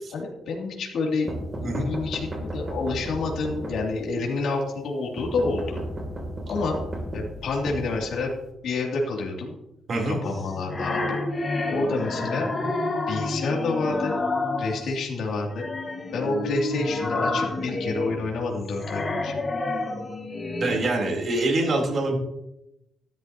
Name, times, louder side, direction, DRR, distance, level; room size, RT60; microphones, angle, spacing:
voice 1, 0.1-5.8 6.5-6.8 7.1-8.3 8.6-9.5 10.0-11.2 11.7-12.5 13.1-14.2 14.6-15.7 16.1-19.4, left 3 dB, 65° left, -2 dB, 2.9 m, -28 dB
sound 1, 1.3-4.2 5.2-8.5, right 1 dB, 20° right, 2.9 m, -34 dB
voice 2, 9.9-10.2 20.6-22.2, right 2 dB, 40° right, -1 dB, 3.7 m, -25 dB
sound 2, 10.2-15.0 15.5-20.8, left 2 dB, 25° left, 1.7 m, -29 dB
14.0 x 12.5 x 3.0 m, 0.86 s
cardioid pair, 145°, 0 cm